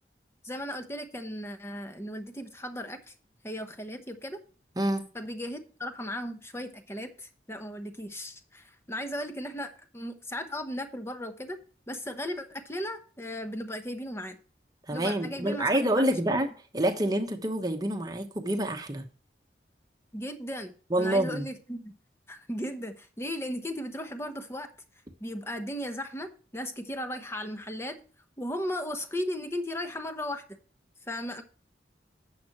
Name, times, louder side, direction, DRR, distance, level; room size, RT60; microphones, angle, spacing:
voice 1, 0.4-3.1 3.4-4.4 5.1-11.6 11.9-14.4 14.9-15.9 20.1-21.9 22.3-24.7 25.2-28.0 28.4-30.6 31.0-31.4, equal, 15° left, 0.9 m, -36 dB
voice 2, 4.8-5.1 14.9-16.5 16.7-19.1 20.9-21.5, right 1 dB, 20° right, 1.1 m, -27 dB
11.0 x 7.4 x 3.0 m
head